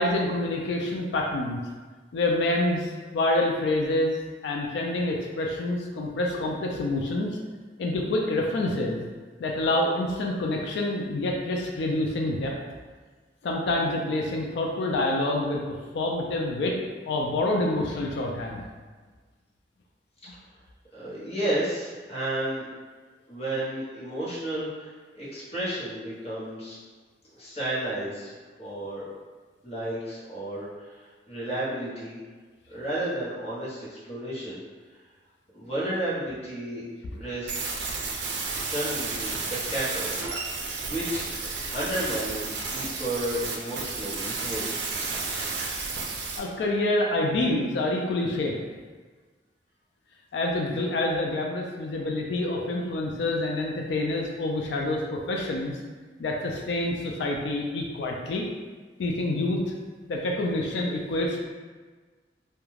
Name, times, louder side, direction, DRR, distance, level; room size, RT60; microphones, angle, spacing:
voice 1, 0.0-1.6 2.1-4.1 4.4-7.3 7.8-9.0 9.4-12.5 13.4-15.6 15.9-16.8 17.1-18.6 46.4-48.6 50.3-55.8 56.2-58.4 59.0-59.6 60.1-61.4, left 2 dB, 75° left, 0 dB, 0.3 m, -27 dB
voice 2, 20.9-22.7 23.3-26.8 27.4-29.0 29.6-32.2 32.7-34.6 35.5-36.8 37.1-37.8 38.7-39.4 39.7-40.1 40.9-44.9, right 1 dB, 35° left, -9 dB, 0.9 m, -32 dB
sound 1, 37.5-46.4, right 4 dB, 80° right, 0.4 m, -32 dB
2.3 x 2.2 x 3.1 m, 1.4 s
head